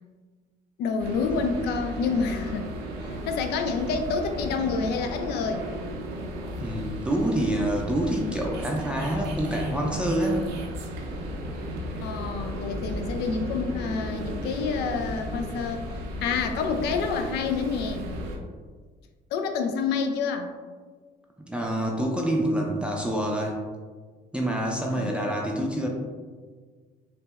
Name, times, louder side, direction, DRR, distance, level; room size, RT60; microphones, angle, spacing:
voice 1, 0.8-2.7 3.0-5.7 12.0-15.8 16.2-18.1 19.3-20.5 24.9-25.1, left 5 dB, 80° left, 5 dB, 0.4 m, -28 dB
sound 1, 1.0-18.4, equal, 80° right, 0.6 m, -35 dB
voice 2, 6.6-10.4 21.4-23.6 24.3-25.9, right 1 dB, 5° right, -1 dB, 0.4 m, -27 dB
5.8 x 2.0 x 2.3 m, 1.5 s
cardioid pair, 110°, 17 cm